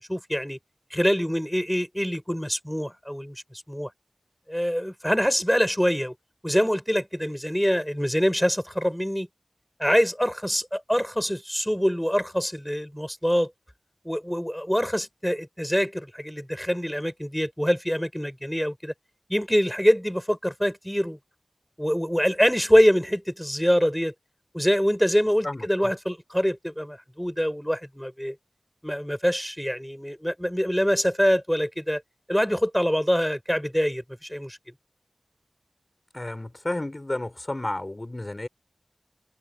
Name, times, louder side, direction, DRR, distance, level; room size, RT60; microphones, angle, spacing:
voice 1, 0.1-0.6 0.9-3.9 4.5-6.1 6.4-9.3 9.8-13.5 14.0-18.9 19.3-21.2 21.8-24.1 24.5-28.4 28.8-32.0 32.3-34.6, equal, 5° left, 7.6 m, -24 dB
voice 2, 25.4-25.9 36.1-38.5, left 1 dB, 35° left, 6.8 m, -32 dB
wide cardioid pair, 50°, 0 cm